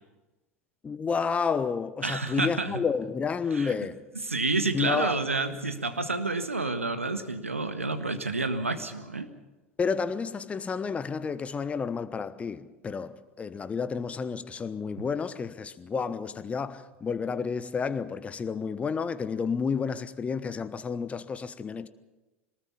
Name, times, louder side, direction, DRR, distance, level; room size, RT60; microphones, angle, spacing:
voice 1, 0.8-4.0 4.7-5.2 9.8-21.9, left 5 dB, 20° left, 1.1 m, -30 dB
voice 2, 2.0-2.8 3.5-3.7 4.2-9.3 15.0-15.1, right 3 dB, 80° right, 1.5 m, -29 dB
22.0 x 19.5 x 7.1 m
figure-of-eight pair, 85°, 7 cm